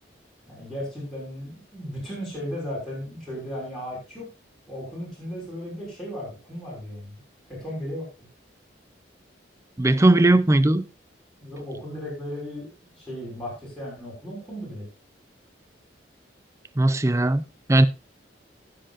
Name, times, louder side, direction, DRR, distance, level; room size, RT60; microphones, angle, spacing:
voice 1, 0.5-4.3 4.7-7.2 7.5-8.1 11.4-14.9, equal, ahead, -7 dB, 5.8 m, -35 dB
voice 2, 9.8-10.9 16.8-17.4 17.7-17.9, right 2 dB, 15° right, 14 dB, 0.5 m, -18 dB
19.0 x 7.7 x 2.5 m, 0.28 s
head